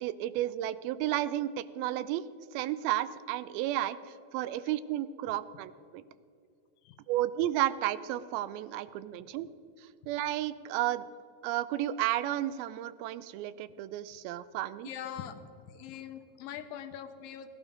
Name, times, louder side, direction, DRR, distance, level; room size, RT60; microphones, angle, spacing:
voice 1, 0.0-2.2 2.5-6.0 7.1-9.5 10.1-11.1 11.4-14.9, right 13 dB, 90° right, 16 dB, 2.4 m, -32 dB
voice 2, 14.8-15.4 15.7-17.5, left 9 dB, 75° left, 8 dB, 2.4 m, -42 dB
18.0 x 11.5 x 5.1 m, 2.4 s
omnidirectional pair, 4.2 m